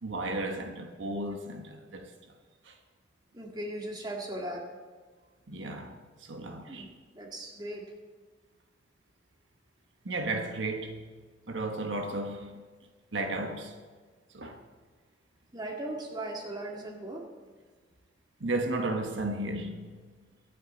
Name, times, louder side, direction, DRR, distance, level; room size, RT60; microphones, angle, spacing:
voice 1, 0.0-2.1 2.6-2.8 5.5-6.9 10.0-11.1 11.5-12.6 13.1-13.7 14.3-14.6 18.4-20.0, right 2 dB, 80° right, 1.3 m, -34 dB
voice 2, 3.3-4.7 5.6-5.7 6.7-6.9 7.1-7.8 15.5-17.3, right 1 dB, 20° right, 2.0 m, -38 dB
23.0 x 8.4 x 4.0 m
head